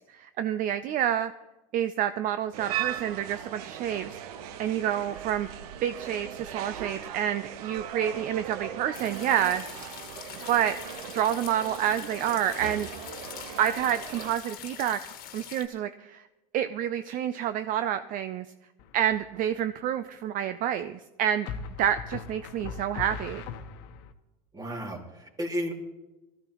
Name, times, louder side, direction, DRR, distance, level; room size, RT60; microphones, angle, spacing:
voice 1, 0.1-1.3 1.7-4.2 4.6-5.5 5.8-9.7 10.5-10.8 11.1-12.9 13.6-15.0 15.3-16.2 16.5-18.5 18.9-21.5 21.8-23.4, right 10 dB, 45° right, 11 dB, 0.5 m, -28 dB
sound 1, 2.5-14.3, right 10 dB, 80° right, 0.9 m, -39 dB
sound 2, 8.9-15.7, left 10 dB, 50° left, 1.5 m, -44 dB
sound 3, 18.8-19.3 21.5-24.1, left 6 dB, 65° left, 1.1 m, -39 dB
voice 2, 24.5-25.7, equal, 20° right, 2 dB, 2.4 m, -33 dB
19.5 x 14.0 x 3.0 m, 1.1 s
supercardioid pair, 110°, 19 cm